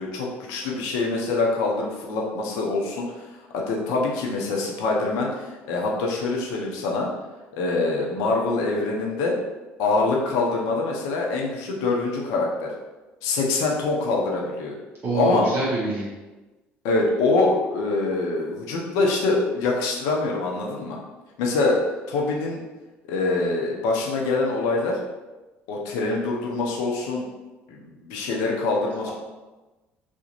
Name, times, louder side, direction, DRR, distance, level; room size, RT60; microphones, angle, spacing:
voice 1, 0.0-3.2 3.5-7.1 7.5-9.3 9.8-12.7 13.2-14.7 15.1-15.5 16.8-21.0 21.4-21.8 22.1-22.6 23.1-25.0 25.7-27.3 27.7-29.1, left 3 dB, 75° left, -1 dB, 0.5 m, -24 dB
voice 2, 15.0-16.1, right 2 dB, 40° right, -5 dB, 0.6 m, -25 dB
2.4 x 2.1 x 2.9 m, 1.2 s
hypercardioid pair, 65°, 6 cm